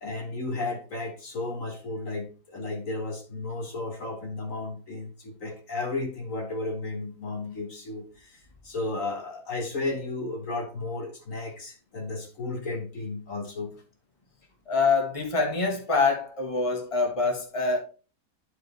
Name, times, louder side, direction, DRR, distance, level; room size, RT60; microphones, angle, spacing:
voice 1, 0.0-13.7, left 2 dB, 55° left, 1.6 m, -34 dB
voice 2, 14.7-17.8, left 4 dB, 20° left, 1.6 m, -25 dB
10.0 x 4.8 x 3.4 m
omnidirectional pair, 1.7 m